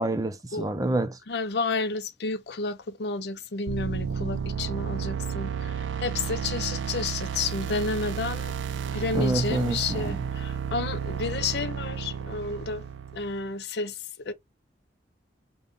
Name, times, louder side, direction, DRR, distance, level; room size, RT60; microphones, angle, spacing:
voice 1, 0.0-1.2 9.1-10.3, right 2 dB, 20° right, 0.4 m, -27 dB
voice 2, 1.3-8.5 8.9-12.8 13.1-14.0 14.3-14.4, left 4 dB, 60° left, 0.6 m, -31 dB
sound 1, 3.7-13.5, right 7 dB, 80° right, 0.4 m, -32 dB
3.5 x 2.2 x 3.8 m
head